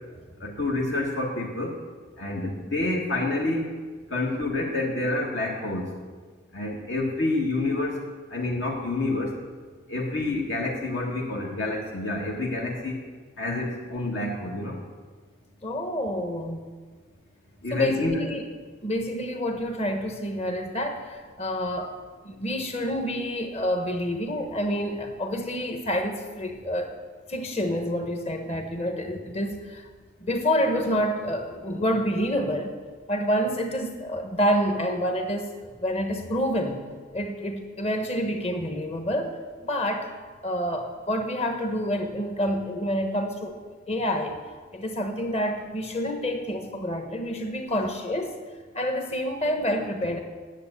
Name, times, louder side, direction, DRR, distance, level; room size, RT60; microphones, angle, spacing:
voice 1, 0.4-1.8 2.2-3.6 4.1-5.9 6.5-8.0 8.3-9.3 9.9-13.0 13.4-14.8 17.6-18.2, left 2 dB, 65° left, -2 dB, 1.6 m, -28 dB
voice 2, 15.6-16.6 17.7-18.4 18.8-21.9 22.2-26.9 27.3-29.9 30.2-32.8 33.1-36.8 37.1-39.3 39.6-40.1 40.4-43.6 43.9-44.4 44.7-48.4 48.7-50.2, equal, 30° left, 4 dB, 1.3 m, -28 dB
10.0 x 7.7 x 8.0 m, 1.5 s
head